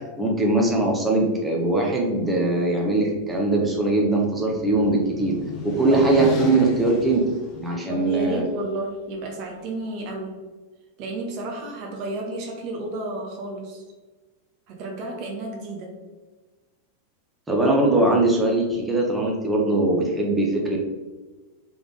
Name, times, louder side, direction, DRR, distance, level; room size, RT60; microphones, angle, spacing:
voice 1, 0.0-5.4 5.6-7.2 7.6-8.4 17.5-21.0, right 2 dB, 10° right, -1 dB, 0.8 m, -21 dB
sound 1, 3.2-8.2, left 1 dB, 30° left, 1.0 m, -37 dB
voice 2, 7.9-10.4 11.0-13.8 14.7-16.0, right 2 dB, 40° right, 0 dB, 0.8 m, -32 dB
3.5 x 3.4 x 3.7 m, 1.3 s
figure-of-eight pair, 90°, 0 cm